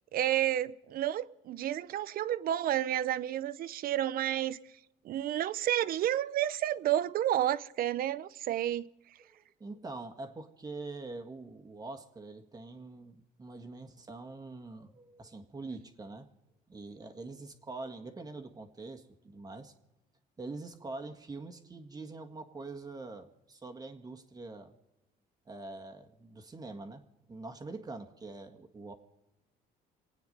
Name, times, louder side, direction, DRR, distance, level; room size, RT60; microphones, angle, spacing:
voice 1, 0.1-4.6 5.0-8.9, right 12 dB, 60° right, 0.6 m, -30 dB
voice 2, 9.2-16.3 16.7-19.7 20.4-24.7 25.5-27.0 27.3-28.9, right 3 dB, 20° right, 1.8 m, -44 dB
27.0 x 9.4 x 5.4 m
cardioid pair, 110°, 17 cm